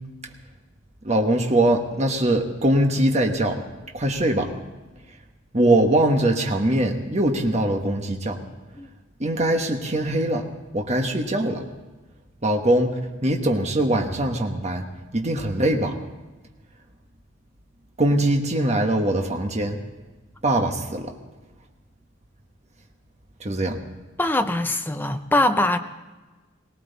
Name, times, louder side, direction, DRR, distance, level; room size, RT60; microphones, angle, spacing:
voice 1, 1.0-3.5 3.9-4.5 5.5-8.4 9.2-10.5 10.7-11.6 12.4-12.9 13.2-14.8 15.1-16.0 18.0-19.8 20.4-21.1 23.4-23.8, right 1 dB, 35° right, 3 dB, 1.3 m, -22 dB
voice 2, 24.2-25.8, left 1 dB, 10° left, 7 dB, 0.7 m, -22 dB
18.5 x 18.5 x 4.1 m, 1.2 s
head